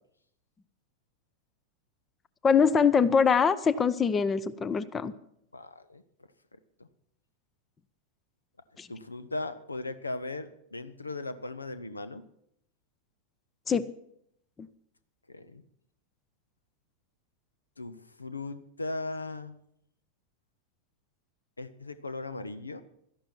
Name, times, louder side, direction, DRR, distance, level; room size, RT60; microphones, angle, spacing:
voice 1, 2.4-5.1 8.8-8.9 13.7-13.8, left 6 dB, 20° left, 16 dB, 0.6 m, -23 dB
voice 2, 5.5-6.0 6.8-6.9 8.9-12.2 15.3-15.6 17.8-19.6 21.6-22.8, left 2 dB, 80° left, 13 dB, 0.8 m, -38 dB
13.0 x 11.5 x 5.9 m, 0.73 s
figure-of-eight pair, 90°, 0 cm